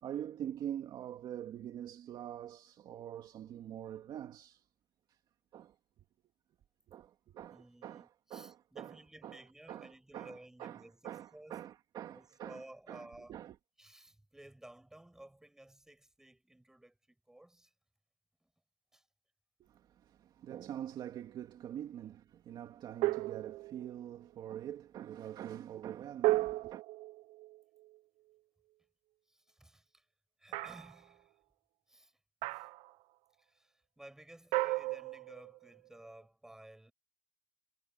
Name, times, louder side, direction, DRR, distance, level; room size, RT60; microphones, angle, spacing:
voice 1, 0.0-4.7 5.1-5.2 5.5-5.8 6.9-9.4 9.7-13.6 19.6-26.8, right 10 dB, 30° right, 2.5 m, -45 dB
voice 2, 7.5-11.6 12.1-13.4 13.8-17.0 17.3-17.7 18.4-18.5 18.9-19.1 29.3-30.1 30.4-31.3 31.9-32.1 32.5-32.6 33.4-36.9, right 1 dB, 5° right, 6.9 m, -55 dB
sound 1, 23.0-24.0 26.2-28.0 30.5-31.0 32.4-32.9 34.5-35.8, right 19 dB, 50° right, 0.9 m, -34 dB
supercardioid pair, 160°, 14 cm